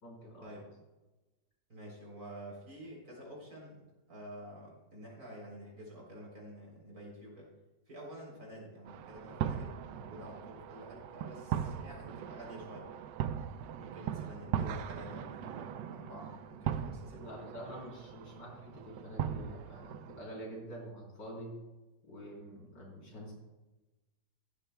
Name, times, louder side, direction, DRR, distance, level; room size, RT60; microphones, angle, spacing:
voice 1, 0.0-0.7 17.2-21.5 22.1-23.3, equal, 85° left, -4 dB, 4.5 m, -47 dB
voice 2, 1.7-3.8 4.1-7.5 7.9-12.9 13.8-17.5, equal, 55° right, -3 dB, 4.0 m, -49 dB
sound 1, 8.9-20.2, right 9 dB, 90° right, 1.2 m, -39 dB
14.5 x 12.5 x 2.3 m, 1.1 s
omnidirectional pair, 1.8 m